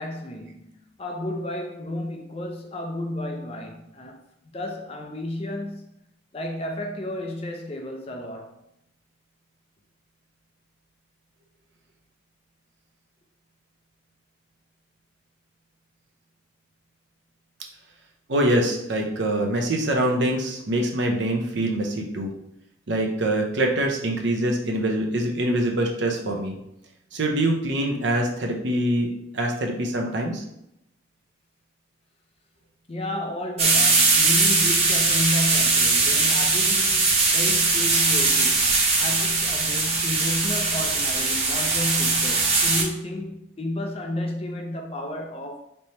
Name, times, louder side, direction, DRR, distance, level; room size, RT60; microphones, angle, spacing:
voice 1, 0.0-4.2 4.5-5.8 6.3-8.6 32.9-45.6, left 1 dB, 30° left, 0.5 m, -32 dB
voice 2, 18.3-22.3 22.9-26.6 27.1-29.1 29.3-30.4, right 1 dB, 65° right, 0.7 m, -24 dB
sound 1, 33.6-42.8, right 3 dB, 30° right, 0.7 m, -21 dB
3.3 x 2.9 x 4.2 m
head